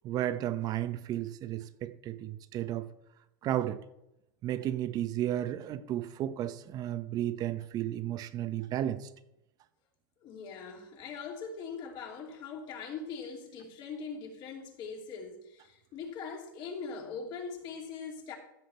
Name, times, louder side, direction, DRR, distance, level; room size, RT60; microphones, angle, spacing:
voice 1, 0.0-2.9 3.4-3.8 4.4-9.1, right 12 dB, 35° right, 0.9 m, -33 dB
voice 2, 10.2-18.4, left 5 dB, 40° left, 2.9 m, -41 dB
15.0 x 8.0 x 4.4 m
supercardioid pair, 135°, 11 cm